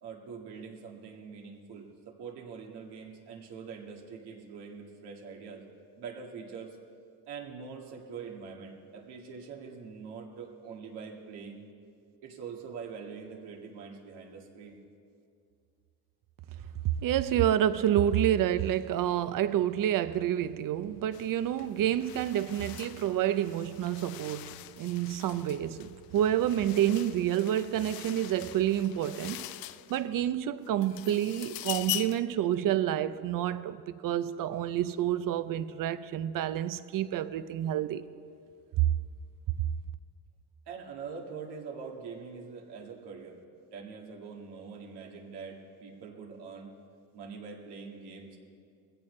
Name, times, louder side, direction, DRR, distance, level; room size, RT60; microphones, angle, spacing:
voice 1, 0.0-5.6 6.0-6.8 7.3-11.7 12.2-14.8 32.3-32.4 40.7-43.4 43.7-46.8 47.1-48.4, right 5 dB, 90° right, 1.9 m, -44 dB
voice 2, 17.0-29.5 29.9-38.0, right 11 dB, 55° right, 0.6 m, -29 dB
sound 1, 21.1-21.3 21.6-30.2 30.6-32.3, left 16 dB, 65° left, 0.5 m, -42 dB
19.5 x 16.0 x 3.3 m
cardioid pair, 120°, 39 cm